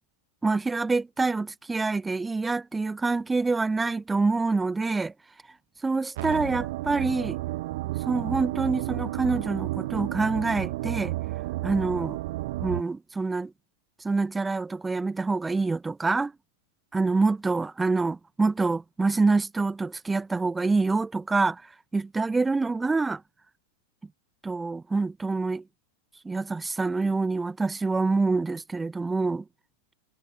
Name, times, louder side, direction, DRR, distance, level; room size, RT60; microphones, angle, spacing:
voice 1, 0.4-5.1 5.8-7.4 8.1-11.1 11.6-12.2 12.6-13.5 14.0-16.3 16.9-21.6 21.9-23.2 24.4-25.6 26.2-29.4, right 3 dB, 10° right, 1.5 m, -26 dB
sound 1, 6.2-12.8, right 18 dB, 50° right, 0.8 m, -32 dB
figure-of-eight pair, 90°, 0 cm